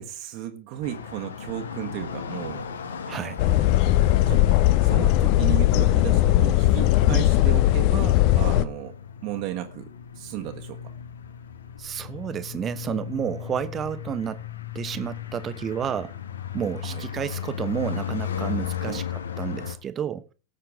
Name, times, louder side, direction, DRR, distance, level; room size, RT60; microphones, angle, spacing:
voice 1, 0.0-2.7 3.5-3.8 4.3-4.4 4.8-8.9 9.2-9.9 10.1-10.9 16.8-17.0 18.9-19.0, right 12 dB, 45° right, 1.5 m, -34 dB
sound 1, 0.8-19.8, left 8 dB, 65° left, 1.5 m, -36 dB
voice 2, 3.1-3.5 7.1-7.2 11.8-14.4 14.7-16.2 16.5-20.3, right 8 dB, 25° right, 1.0 m, -31 dB
sound 2, 3.4-8.6, left 14 dB, 45° left, 0.8 m, -19 dB
18.0 x 8.2 x 3.6 m
figure-of-eight pair, 90°, 0 cm